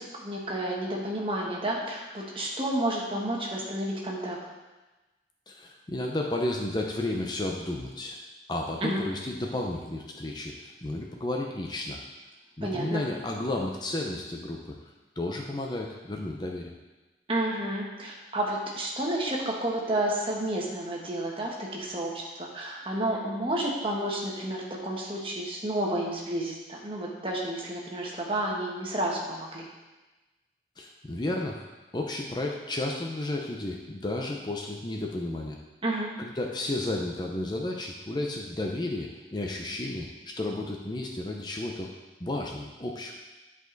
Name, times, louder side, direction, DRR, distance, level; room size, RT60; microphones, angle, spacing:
voice 1, 0.0-4.4 8.8-9.0 12.6-13.0 17.3-22.1 22.4-29.7 35.8-36.1, right 1 dB, 30° right, -2 dB, 1.4 m, -31 dB
voice 2, 5.5-8.2 8.5-12.0 12.6-14.8 15.2-16.7 30.8-31.6 31.9-35.6 36.2-41.9 42.2-43.1, left 2 dB, 25° left, 0 dB, 0.6 m, -32 dB
10.5 x 5.0 x 4.0 m, 1.1 s
head